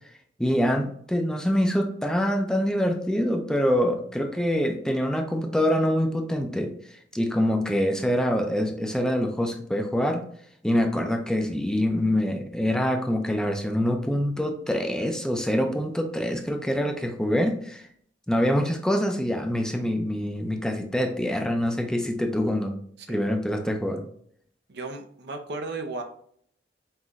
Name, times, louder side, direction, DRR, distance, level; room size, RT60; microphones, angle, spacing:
voice 1, 0.4-6.7 7.1-10.2 10.6-17.9 18.3-22.8 23.1-24.0, equal, 5° left, 3 dB, 0.5 m, -25 dB
voice 2, 24.7-26.0, right 3 dB, 60° right, 5 dB, 0.6 m, -35 dB
5.6 x 3.0 x 2.5 m, 0.63 s
head